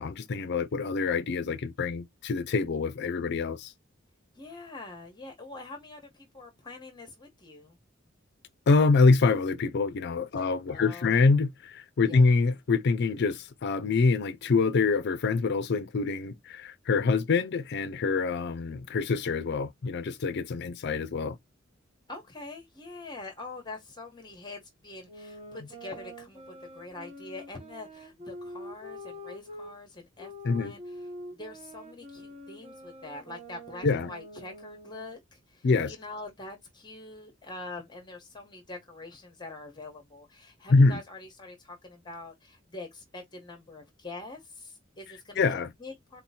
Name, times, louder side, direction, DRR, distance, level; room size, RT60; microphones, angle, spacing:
voice 1, 0.0-3.7 8.7-21.4 30.4-30.7 33.8-34.1 35.6-35.9 40.7-41.0 45.4-45.7, left 4 dB, 55° left, 0.4 m, -25 dB
voice 2, 4.3-7.8 10.3-11.4 12.1-12.4 22.1-46.2, left 2 dB, 25° left, 1.1 m, -44 dB
sound 1, 25.0-29.7 30.2-35.2, equal, 30° right, 1.6 m, -45 dB
4.0 x 2.9 x 4.1 m
head